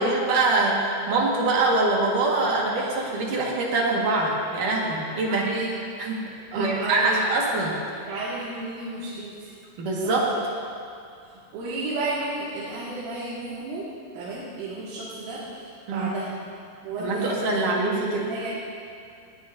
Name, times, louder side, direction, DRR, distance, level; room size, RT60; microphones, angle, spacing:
voice 1, 0.0-5.4 6.0-6.2 6.5-7.8 9.8-10.3 15.9-16.1 17.0-18.3, right 2 dB, 55° right, -3 dB, 2.6 m, -24 dB
voice 2, 5.3-5.8 6.5-7.2 8.1-9.5 10.0-10.5 11.2-16.4 16.8-18.5, right 2 dB, 75° right, -8 dB, 4.6 m, -33 dB
19.5 x 17.5 x 2.7 m, 2.4 s
omnidirectional pair, 5.9 m